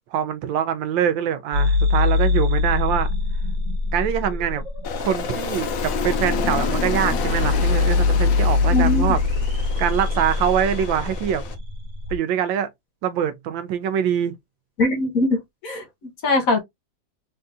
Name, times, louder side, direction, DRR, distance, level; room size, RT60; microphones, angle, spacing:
voice 1, 0.0-3.1 3.9-4.6 5.0-9.2 9.8-11.4 12.1-12.7 13.0-14.3, right 9 dB, 90° right, 1.3 m, -24 dB
sound 1, 1.5-12.2, left 3 dB, 50° right, 1.2 m, -23 dB
Aircraft, 4.8-11.5, left 6 dB, 80° left, 1.4 m, -30 dB
voice 2, 8.7-9.1 14.8-16.6, left 2 dB, 55° left, 1.2 m, -22 dB
3.8 x 2.7 x 2.3 m
omnidirectional pair, 2.0 m